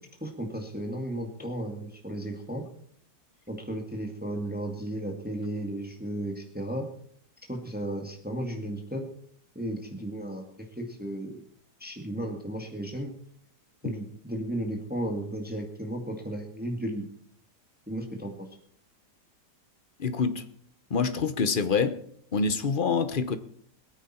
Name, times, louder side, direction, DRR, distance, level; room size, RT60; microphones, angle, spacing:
voice 1, 0.2-2.6 3.5-6.9 7.5-9.0 9.6-11.4 11.8-13.1 13.8-17.0 17.9-18.5, right 1 dB, 5° right, 2 dB, 1.8 m, -34 dB
voice 2, 20.0-20.4 20.9-22.0 22.3-23.4, left 5 dB, 40° left, 10 dB, 0.8 m, -26 dB
21.5 x 9.5 x 4.4 m, 0.63 s
omnidirectional pair, 1.9 m